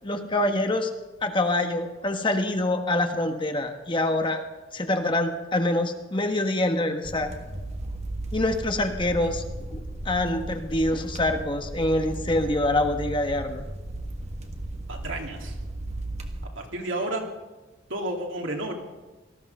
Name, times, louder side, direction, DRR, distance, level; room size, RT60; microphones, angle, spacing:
voice 1, 0.0-0.9 1.2-4.4 4.7-7.3 8.3-9.4 9.7-9.8 10.0-13.6, left 1 dB, 25° left, 5 dB, 1.3 m, -25 dB
sound 1, 7.0-16.4, right 1 dB, 35° right, 1.6 m, -35 dB
voice 2, 14.9-15.6 16.5-17.3 17.9-18.7, right 1 dB, 80° right, 1 dB, 2.8 m, -31 dB
18.5 x 14.0 x 5.5 m, 1.2 s
head